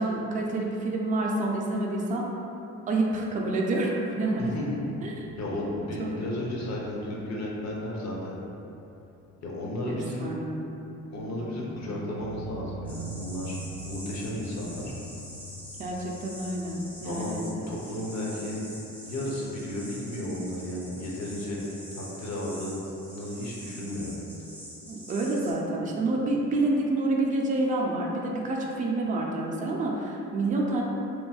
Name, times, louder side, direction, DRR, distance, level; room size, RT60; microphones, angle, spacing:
voice 1, 0.0-2.3 2.9-4.5 5.0-5.1 6.0-6.3 9.9-10.6 15.8-17.7 24.9-30.8, right 2 dB, 25° right, -2 dB, 0.4 m, -28 dB
sound 1, 4.1-9.6 9.9-10.0 11.2-17.7, right 2 dB, 90° left, 1.1 m, -44 dB
voice 2, 4.4-4.8 5.4-8.4 9.4-10.3 11.1-13.6 13.8-14.9 17.0-17.4 17.7-18.6 19.0-21.6 22.0-22.8 23.1-24.2, left 1 dB, 65° left, -4 dB, 0.7 m, -33 dB
sound 2, 12.9-25.5, equal, 5° left, 0.8 m, -45 dB
3.0 x 2.5 x 2.2 m, 2.9 s
cardioid pair, 90°, 30 cm